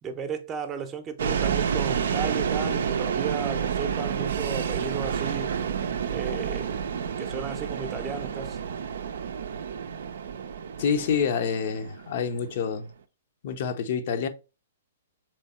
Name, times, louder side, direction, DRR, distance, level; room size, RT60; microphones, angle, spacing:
voice 1, 0.0-5.5 6.1-6.9 7.2-8.6, right 6 dB, 20° right, 0.7 m, -34 dB
sound 1, 1.2-12.7, right 7 dB, 65° right, 0.4 m, -29 dB
voice 2, 10.8-12.9 13.4-14.3, left 6 dB, 50° left, 0.6 m, -27 dB
3.4 x 3.1 x 4.1 m
figure-of-eight pair, 115°, 0 cm